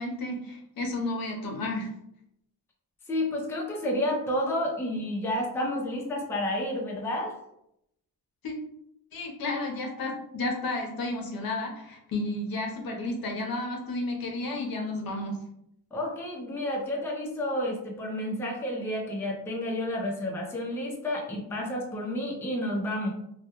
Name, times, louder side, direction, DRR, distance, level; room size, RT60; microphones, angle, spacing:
voice 1, 0.0-1.9 8.4-8.5 9.1-15.4, left 2 dB, 55° left, 2 dB, 0.7 m, -32 dB
voice 2, 3.1-7.3 15.9-23.1, left 1 dB, 5° left, -2 dB, 0.5 m, -30 dB
2.2 x 2.2 x 2.9 m, 0.78 s
cardioid pair, 90°, 44 cm